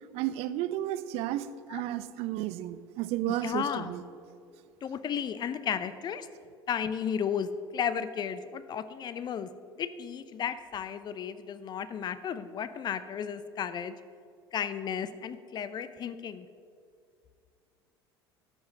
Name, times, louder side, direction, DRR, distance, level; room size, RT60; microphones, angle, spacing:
voice 1, 0.1-4.0, right 13 dB, 50° right, 13 dB, 0.5 m, -33 dB
voice 2, 3.3-3.9 4.8-6.3 6.7-9.5 9.8-13.9 14.5-16.5, left 8 dB, 35° left, 13 dB, 0.6 m, -34 dB
12.0 x 5.3 x 6.2 m, 2.3 s
figure-of-eight pair, 70°, 13 cm